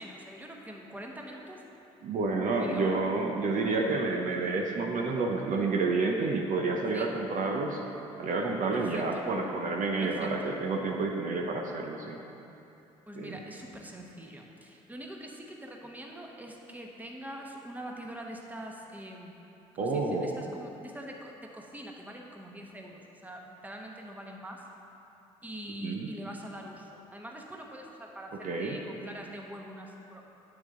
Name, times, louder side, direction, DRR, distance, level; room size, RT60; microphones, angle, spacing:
voice 1, 0.0-1.6 2.4-3.0 6.9-7.1 8.7-9.3 10.0-10.6 13.1-19.4 19.7-24.7 25.4-30.2, equal, 10° right, 0 dB, 1.1 m, -44 dB
voice 2, 2.0-7.8 8.2-12.2 13.1-13.4 19.8-20.4 25.8-26.1 28.4-28.8, right 3 dB, 55° right, 1 dB, 0.8 m, -29 dB
8.7 x 6.2 x 3.8 m, 2.9 s
hypercardioid pair, 60°, 16 cm